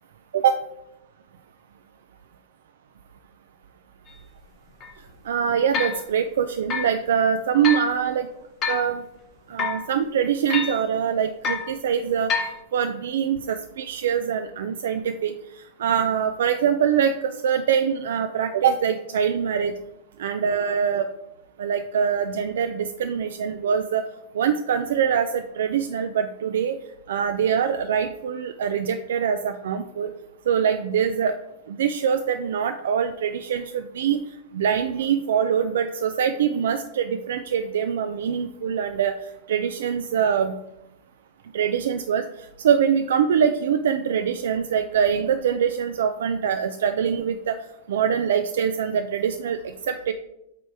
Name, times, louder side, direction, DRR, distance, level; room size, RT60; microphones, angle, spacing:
sound 1, 4.1-4.2 4.8-4.9 5.7-6.0 6.7-6.9 7.6-7.9 8.6-8.9 9.6-9.9 10.5-10.8 11.4-11.7 12.3-12.6, left 5 dB, 25° left, 0.8 m, -27 dB
voice 1, 5.3-8.3 8.7-9.0 9.5-12.3 12.7-15.3 15.8-19.7 20.2-21.1 21.6-24.0 24.3-26.8 27.1-30.1 30.5-31.3 31.7-34.2 34.5-39.1 39.5-40.5 41.5-47.6 47.9-50.1, right 8 dB, 80° right, 8 dB, 0.4 m, -23 dB
8.2 x 3.0 x 4.7 m, 0.86 s
supercardioid pair, 160°, 0 cm